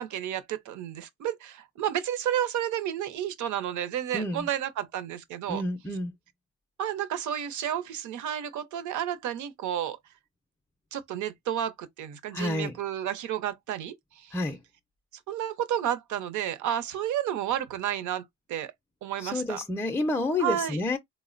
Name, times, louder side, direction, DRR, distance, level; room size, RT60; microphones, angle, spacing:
voice 1, 0.0-5.6 6.8-10.0 10.9-14.3 15.3-18.7 19.0-19.6 20.4-20.8, right 10 dB, 75° right, 0.7 m, -31 dB
voice 2, 4.1-4.5 5.5-6.1 12.3-12.8 14.3-14.6 19.2-21.0, left 2 dB, 10° left, 0.4 m, -29 dB
3.7 x 2.0 x 2.4 m
cardioid pair, 90°, 30 cm